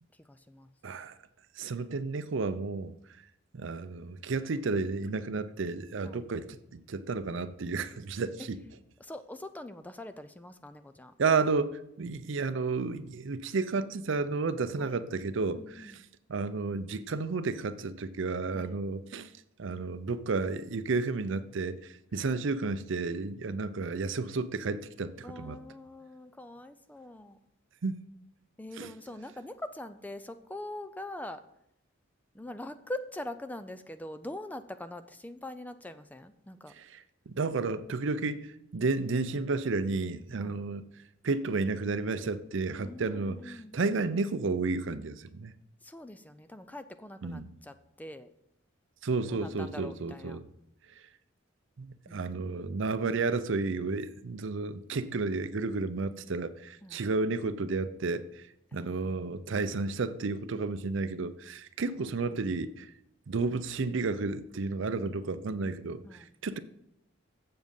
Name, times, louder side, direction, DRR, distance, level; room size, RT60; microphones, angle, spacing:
voice 1, 0.2-0.7 6.0-6.3 9.0-11.1 14.8-14.9 15.5-16.0 18.5-18.8 22.1-22.3 25.2-27.4 28.6-31.4 32.3-36.7 40.3-40.6 42.8-43.8 45.8-48.3 49.3-50.4 52.1-52.5 56.8-57.0 58.7-59.2 66.0-66.3, left 1 dB, 10° left, 0.4 m, -43 dB
voice 2, 0.8-1.1 1.6-3.0 3.5-6.5 6.7-8.6 11.2-16.0 16.3-19.3 19.6-25.6 27.8-28.0 28.8-28.9 36.8-40.8 41.2-45.5 47.2-47.5 49.0-50.4 51.8-58.4 58.7-62.9 63.3-66.6, right 3 dB, 65° right, 0.5 m, -32 dB
7.7 x 7.2 x 5.4 m
head